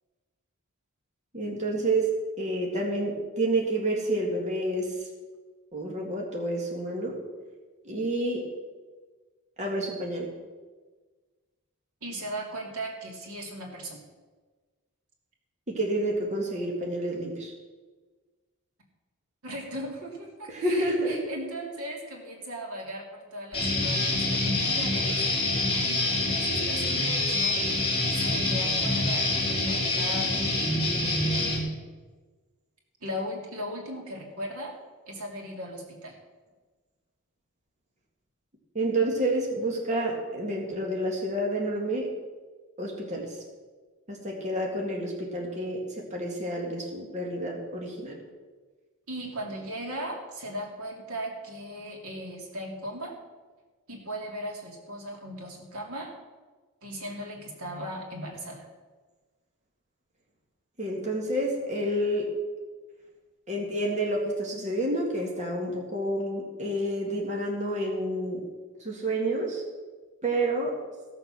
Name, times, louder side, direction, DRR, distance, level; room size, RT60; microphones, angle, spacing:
voice 1, 1.3-5.1 5.7-7.2 7.9-8.5 9.6-10.3 15.7-17.5 20.5-21.2 38.7-42.1 42.8-43.4 44.1-48.2 60.8-62.4 63.5-68.4 68.8-69.6 70.2-70.8, right 1 dB, 35° right, -2 dB, 1.9 m, -29 dB
voice 2, 12.0-14.0 19.4-25.1 25.4-27.6 28.1-30.3 30.9-31.6 33.0-34.7 35.1-36.2 49.1-53.1 53.9-56.1 56.8-58.7, equal, 75° right, 0 dB, 2.7 m, -38 dB
Guitar, 23.5-31.6, left 2 dB, 25° left, 4.0 m, -26 dB
15.5 x 7.0 x 6.1 m, 1.4 s
head